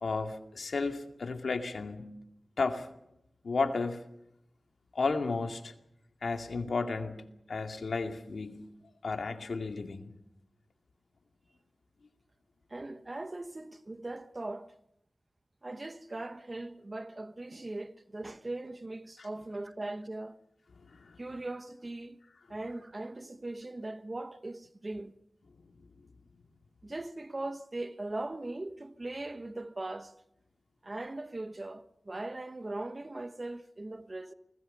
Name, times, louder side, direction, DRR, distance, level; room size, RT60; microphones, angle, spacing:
voice 1, 0.0-2.1 2.6-2.9 3.4-4.0 4.9-5.7 6.2-8.7 9.0-10.1 20.9-21.2, left 4 dB, 90° left, 2.3 m, -33 dB
voice 2, 12.7-14.7 15.6-20.4 21.2-22.2 22.5-25.2 26.8-30.1 30.8-34.3, right 2 dB, 35° right, 1.2 m, -40 dB
29.5 x 20.0 x 5.6 m
wide cardioid pair, 85°, 0 cm